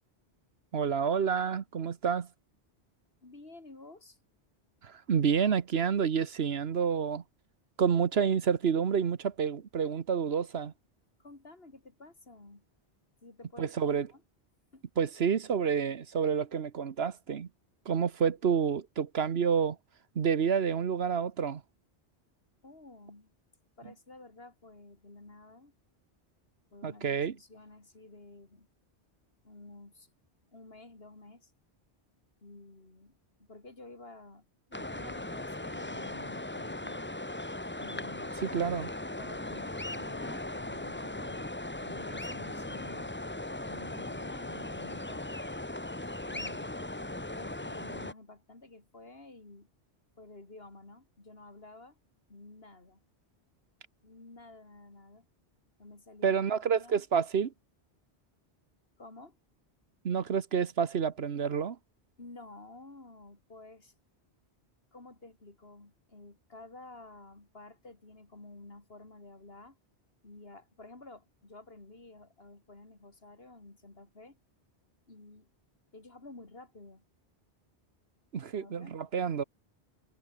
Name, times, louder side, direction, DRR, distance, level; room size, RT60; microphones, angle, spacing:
voice 1, 0.7-2.3 4.8-7.2 7.8-10.7 13.6-14.1 15.0-17.5 17.8-19.8 20.1-21.6 26.8-27.3 38.4-38.9 56.2-57.5 60.0-61.8 78.3-79.4, right 7 dB, 70° right, 1.3 m, -29 dB
voice 2, 3.2-4.2 11.2-12.6 13.2-14.2 14.7-14.8 22.6-23.3 23.8-25.7 26.7-28.7 29.4-30.1 30.5-31.5 32.4-34.4 34.7-37.1 37.8-38.4 39.1-41.5 41.8-43.2 43.7-45.3 46.2-46.7 47.3-49.7 50.2-52.0 52.3-53.0 54.0-55.3 55.8-57.0 59.0-59.4 62.2-63.9 64.9-69.8 70.2-74.4 75.1-75.5 75.9-77.0 78.5-79.0, left 2 dB, 60° left, 3.7 m, -52 dB
sound 1, 34.7-48.1, left 1 dB, 10° left, 1.0 m, -38 dB
omnidirectional pair, 1.1 m